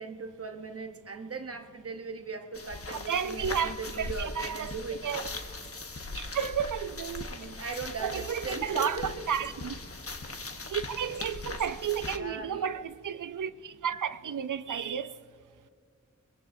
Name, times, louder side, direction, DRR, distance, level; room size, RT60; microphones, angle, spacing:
voice 1, 0.0-5.1 7.3-9.3 12.1-12.7, right 4 dB, 50° right, 0.9 m, -39 dB
sound 1, 2.5-12.2, left 3 dB, 50° left, 1.1 m, -40 dB
voice 2, 3.1-4.7 5.0-5.3 6.2-7.3 7.7-9.8 10.7-15.1, right 8 dB, 85° right, 0.5 m, -32 dB
22.0 x 22.0 x 2.7 m
wide cardioid pair, 70°, 30 cm